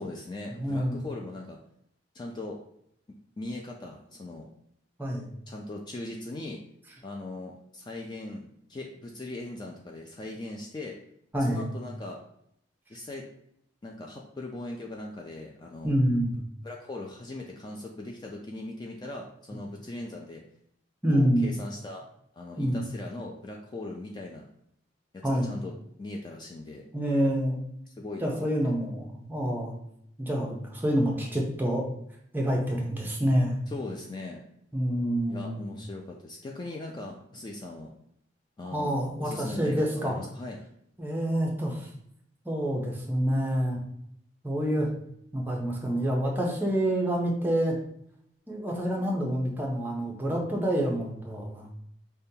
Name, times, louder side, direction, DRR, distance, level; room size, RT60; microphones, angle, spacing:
voice 1, 0.0-1.6 2.1-2.6 3.1-4.5 5.5-6.6 7.0-11.0 11.4-12.2 12.9-13.2 13.8-15.9 16.6-20.4 21.1-22.0 22.3-24.5 25.1-26.8 27.9-28.7 33.7-34.4 35.3-37.9 38.6-40.6, left 2 dB, 25° left, -1 dB, 0.3 m, -39 dB
voice 2, 0.5-1.0 5.0-5.3 11.3-11.7 15.8-16.3 21.0-21.5 22.6-22.8 25.2-25.5 26.9-27.6 28.2-29.7 30.2-31.9 32.3-33.6 34.7-35.6 38.7-40.3 41.0-41.9 42.4-43.8 44.4-44.9 45.3-47.8 48.5-51.7, equal, 10° right, -1 dB, 0.6 m, -27 dB
5.1 x 2.2 x 2.7 m, 0.72 s
head